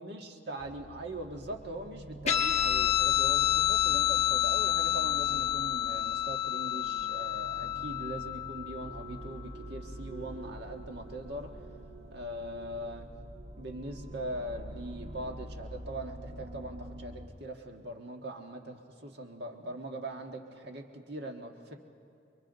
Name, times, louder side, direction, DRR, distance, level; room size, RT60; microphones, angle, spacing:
voice 1, 0.0-11.6 12.1-13.0 13.6-21.8, right 1 dB, 65° right, 3 dB, 1.6 m, -41 dB
sound 1, 0.6-17.3, equal, 45° right, 1.5 m, -46 dB
Guitar, 2.3-9.2, left 12 dB, 40° left, 1.1 m, -29 dB
29.5 x 22.5 x 4.0 m, 2.5 s
head